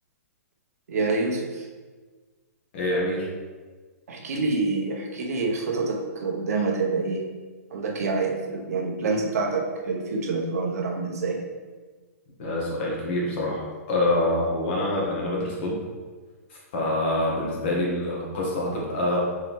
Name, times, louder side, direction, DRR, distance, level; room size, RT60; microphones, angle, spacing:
voice 1, 0.9-1.7 4.1-7.2 7.7-11.4, right 3 dB, 70° right, 1 dB, 0.8 m, -27 dB
voice 2, 2.7-3.3 12.4-15.8 16.5-19.2, left 1 dB, 45° left, -4 dB, 1.4 m, -26 dB
4.5 x 3.8 x 3.1 m, 1.4 s
hypercardioid pair, 155°, 9 cm